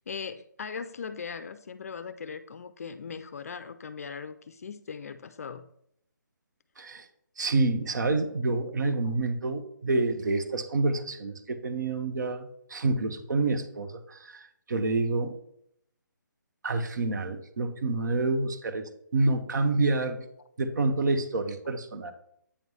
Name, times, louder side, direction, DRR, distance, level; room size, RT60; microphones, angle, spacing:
voice 1, 0.0-5.7, left 6 dB, 50° left, 12 dB, 0.4 m, -39 dB
voice 2, 7.4-15.3 16.6-20.3 20.6-22.1, right 3 dB, 60° right, 8 dB, 0.9 m, -28 dB
8.5 x 3.1 x 5.5 m, 0.73 s
hypercardioid pair, 165°, 11 cm